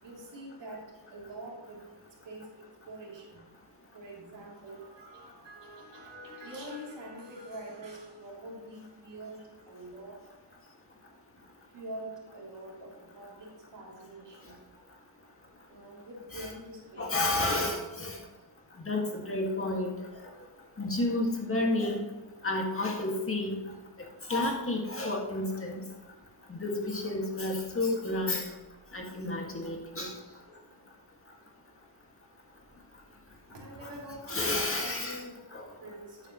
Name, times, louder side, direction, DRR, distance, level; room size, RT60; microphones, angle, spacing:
voice 1, 0.0-3.4 3.9-10.3 11.7-14.6 15.7-17.3 29.2-29.6 30.0-30.4 33.5-35.5 35.8-36.3, right 1 dB, 90° right, -3 dB, 3.1 m, -45 dB
voice 2, 17.0-18.2 18.9-19.9 20.8-22.0 22.4-23.6 24.3-25.8 26.5-28.5 28.9-30.1 33.8-33.9 34.3-35.2 35.5-35.6, left 2 dB, 30° left, 0 dB, 1.9 m, -30 dB
10.5 x 8.4 x 3.1 m, 1.2 s
wide cardioid pair, 120°, 42 cm